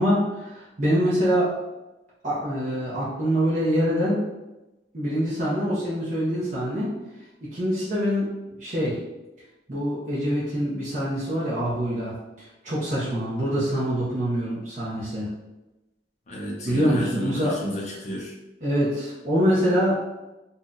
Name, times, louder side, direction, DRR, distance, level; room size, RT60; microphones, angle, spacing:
voice 1, 0.0-1.5 2.2-4.2 4.9-6.9 7.4-9.0 9.7-15.3 16.6-17.6 18.6-20.0, equal, 45° right, -9 dB, 0.8 m, -25 dB
voice 2, 16.3-18.4, equal, 40° left, -3 dB, 0.7 m, -33 dB
2.7 x 2.2 x 3.8 m, 1.0 s
head